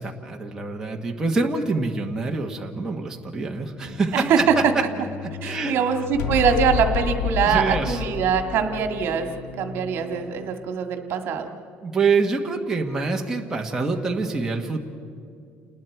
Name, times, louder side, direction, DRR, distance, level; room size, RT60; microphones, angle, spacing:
voice 1, 0.0-4.3 5.2-5.7 7.4-8.0 11.8-14.9, right 4 dB, 10° right, 0 dB, 1.4 m, -26 dB
sound 1, 3.8-10.5, left 7 dB, 75° left, 1.7 m, -31 dB
voice 2, 4.1-4.5 5.4-9.3 9.6-11.5, right 7 dB, 55° right, 5 dB, 1.8 m, -23 dB
29.5 x 20.5 x 4.6 m, 2.4 s
cardioid pair, 150°, 5 cm